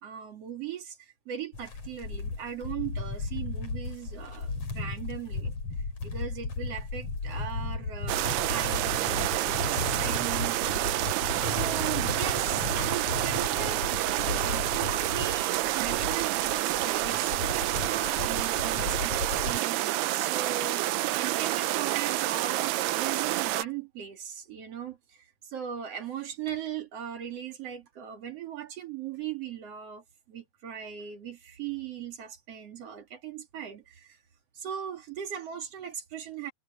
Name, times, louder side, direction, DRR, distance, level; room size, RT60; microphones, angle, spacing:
voice 1, 0.0-5.5 6.0-20.8 21.2-34.2 34.5-36.5, right 9 dB, 45° right, 2.5 m, -39 dB
sound 1, 1.5-19.6, left 3 dB, 40° left, 5.5 m, -35 dB
sound 2, 8.1-23.6, right 16 dB, 85° right, 2.7 m, -28 dB
omnidirectional pair, 4.7 m